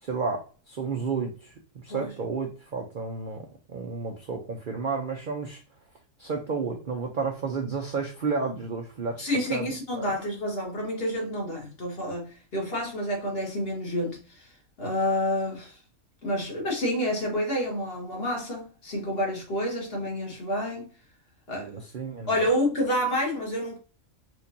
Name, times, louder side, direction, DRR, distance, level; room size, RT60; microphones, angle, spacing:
voice 1, 0.0-1.5 1.8-5.6 6.2-9.2 9.5-10.0 21.5-22.5, right 5 dB, 55° right, 0.5 m, -32 dB
voice 2, 9.2-14.5 14.8-15.8 16.2-20.9 21.5-21.8 22.3-23.8, equal, 45° left, 1.4 m, -29 dB
4.5 x 2.5 x 2.7 m
omnidirectional pair, 1.5 m